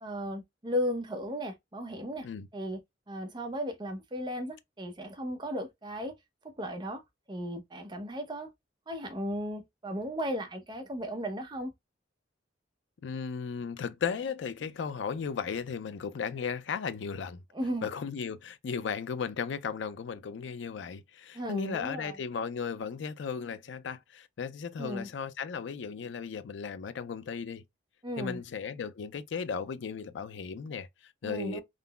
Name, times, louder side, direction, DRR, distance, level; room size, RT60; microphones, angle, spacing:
voice 1, 0.0-2.3 2.5-2.8 3.1-6.1 6.4-7.0 7.3-8.5 8.9-11.7 17.5-17.9 21.3-22.2 24.8-25.1 28.0-28.4 31.2-31.6, equal, 25° right, 0.6 m, -35 dB
voice 2, 13.0-17.4 17.8-27.6 28.2-31.6, left 6 dB, 75° left, 0.4 m, -36 dB
3.7 x 2.0 x 2.2 m
head